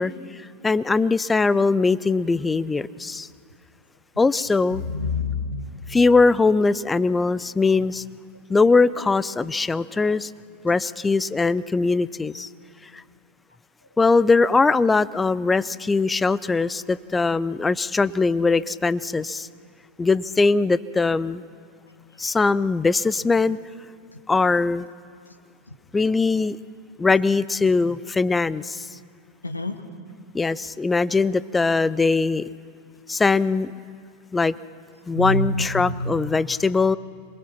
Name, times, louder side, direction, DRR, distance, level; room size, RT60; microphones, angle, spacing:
voice 1, 0.0-3.3 4.2-4.8 5.9-8.0 8.5-10.3 10.6-12.5 12.9-13.0 14.0-19.5 20.0-21.4 22.2-23.6 24.3-24.9 25.9-26.6 27.0-29.0 30.3-32.4 33.1-33.7 34.3-34.5 35.1-37.0, left 4 dB, 10° left, 19 dB, 0.5 m, -21 dB
voice 2, 4.8-5.6 29.4-29.7 35.1-36.1, left 2 dB, 80° left, 7 dB, 1.5 m, -26 dB
27.0 x 21.5 x 6.0 m, 2.2 s
figure-of-eight pair, 90°, 0 cm